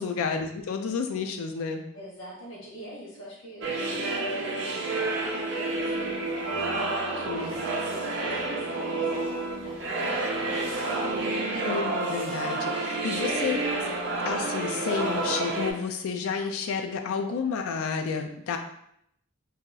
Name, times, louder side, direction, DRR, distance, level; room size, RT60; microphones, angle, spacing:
voice 1, 0.0-1.8 7.2-7.5 11.7-13.6 14.2-18.6, left 5 dB, 85° left, 5 dB, 0.3 m, -30 dB
voice 2, 1.9-11.0, equal, 65° left, -7 dB, 1.0 m, -45 dB
sound 1, 3.6-15.7, right 2 dB, 55° right, 0.5 m, -29 dB
2.7 x 2.3 x 3.8 m, 0.73 s
head